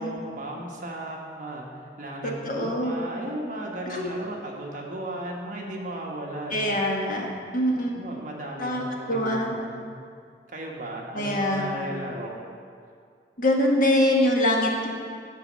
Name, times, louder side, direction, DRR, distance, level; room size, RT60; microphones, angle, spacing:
voice 1, 0.0-1.7 2.0-6.8 7.9-9.9 10.5-12.4, right 1 dB, 50° right, -1 dB, 1.2 m, -35 dB
voice 2, 2.2-3.1 3.9-4.0 6.5-7.3 7.5-8.0 8.6-9.5 11.1-11.8 13.4-14.9, left 1 dB, 50° left, 0 dB, 1.2 m, -24 dB
11.0 x 4.0 x 7.4 m, 2.2 s
head